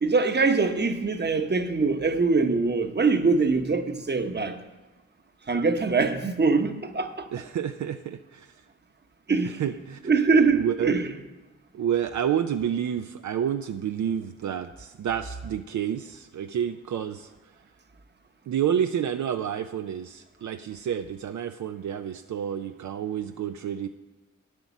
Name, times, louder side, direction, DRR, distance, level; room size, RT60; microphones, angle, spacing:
voice 1, 0.0-4.6 5.5-7.3 9.3-9.6 10.0-11.1, right 4 dB, 35° right, 1.0 m, -23 dB
voice 2, 7.3-8.5 9.4-10.1 10.5-11.0 11.7-17.3 18.5-23.9, right 9 dB, 70° right, 0.5 m, -29 dB
9.3 x 8.1 x 7.1 m
cardioid pair, 70°, 30 cm